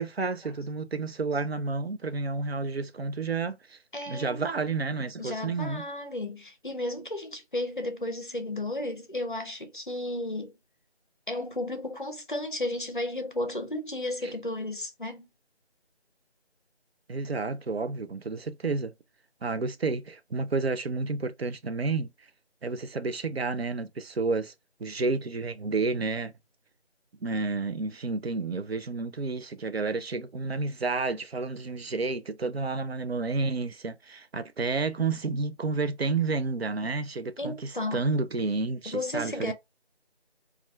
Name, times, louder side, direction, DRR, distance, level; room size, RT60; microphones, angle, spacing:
voice 1, 0.0-3.8 4.1-5.9 14.2-14.3 17.1-18.9 19.4-22.1 22.6-24.5 24.8-26.3 27.2-39.5, right 3 dB, 65° right, 0.4 m, -30 dB
voice 2, 3.9-4.4 5.2-10.6 11.3-15.3 37.4-38.0 38.9-39.5, left 1 dB, 45° left, 0.5 m, -33 dB
2.3 x 2.2 x 3.0 m
figure-of-eight pair, 175°, 34 cm